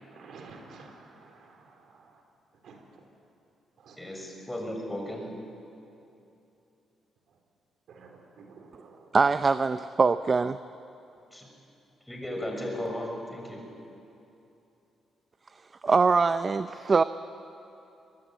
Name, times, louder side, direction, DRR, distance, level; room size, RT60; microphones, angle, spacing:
voice 1, 0.1-2.1 2.6-2.8 3.8-4.0 7.9-9.1, right 4 dB, 70° right, 3 dB, 4.3 m, -50 dB
voice 2, 4.0-5.3 11.3-11.5 12.1-13.6, left 1 dB, 10° left, 1 dB, 6.3 m, -35 dB
voice 3, 9.1-10.6 15.8-17.0, right 4 dB, 35° right, 12 dB, 0.6 m, -23 dB
24.0 x 21.0 x 9.2 m, 2.8 s
cardioid pair, 90°, 0 cm